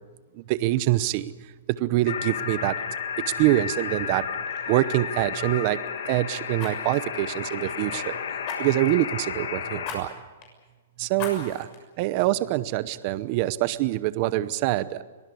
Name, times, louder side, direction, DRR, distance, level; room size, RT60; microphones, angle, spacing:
voice 1, 0.5-1.3 1.8-2.8 3.3-4.2 4.7-5.8 6.1-8.2 8.6-10.1 11.0-11.7 12.0-15.0, right 16 dB, 35° right, 16 dB, 0.8 m, -25 dB
sound 1, 2.1-9.9, left 7 dB, 75° left, 2.7 m, -32 dB
Fire, 3.9-4.1 4.4-4.6 6.6-8.0 8.4-9.0 9.8-10.0 10.4-10.5 11.1-11.8 12.3-12.4, left 5 dB, 35° left, 6.6 m, -38 dB
23.5 x 19.0 x 8.4 m, 1.3 s
hypercardioid pair, 160°, 0 cm